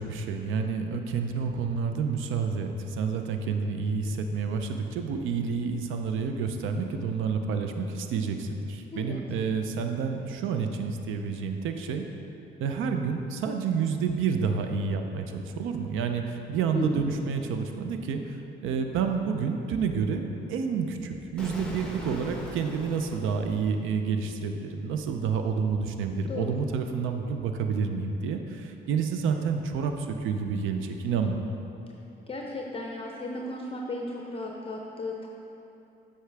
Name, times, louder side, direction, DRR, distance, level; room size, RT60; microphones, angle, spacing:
voice 1, 0.0-12.1 12.6-31.5, right 5 dB, 85° right, 5 dB, 0.5 m, -29 dB
voice 2, 16.7-17.1 26.3-26.6 32.3-35.3, left 2 dB, 30° left, -1 dB, 0.6 m, -35 dB
Explosion, 21.4-24.3, left 1 dB, 5° left, 1.0 m, -40 dB
8.0 x 5.6 x 3.4 m, 2.9 s
cardioid pair, 90°, 20 cm